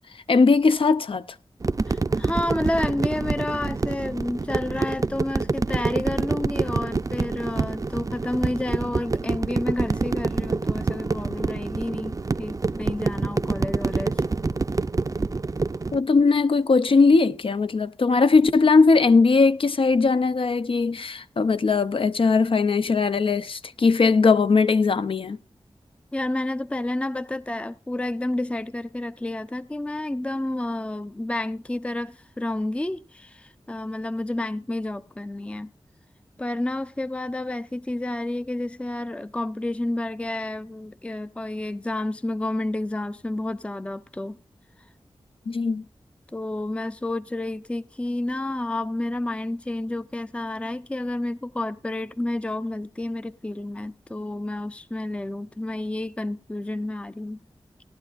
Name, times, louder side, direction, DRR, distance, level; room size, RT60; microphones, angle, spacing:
voice 1, 0.3-1.2 15.9-25.4 45.5-45.8, left 4 dB, 65° left, 0.7 m, -19 dB
sound 1, 1.6-16.0, right 3 dB, 35° right, 0.5 m, -26 dB
voice 2, 1.9-14.2 26.1-35.7 36.4-44.4 46.3-57.4, left 1 dB, 10° left, 0.5 m, -30 dB
18.0 x 11.5 x 2.5 m
wide cardioid pair, 80°, 10 cm